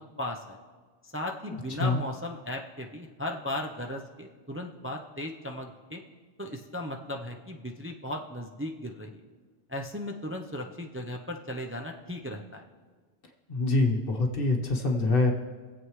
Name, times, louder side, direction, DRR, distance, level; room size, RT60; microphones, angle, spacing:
voice 1, 0.2-0.6 1.0-6.0 6.4-9.1 9.7-12.6, left 1 dB, 15° right, 1 dB, 0.5 m, -36 dB
voice 2, 1.5-2.0 13.5-15.3, left 2 dB, 55° left, 1 dB, 1.3 m, -25 dB
24.0 x 8.0 x 3.2 m, 1.5 s
omnidirectional pair, 1.1 m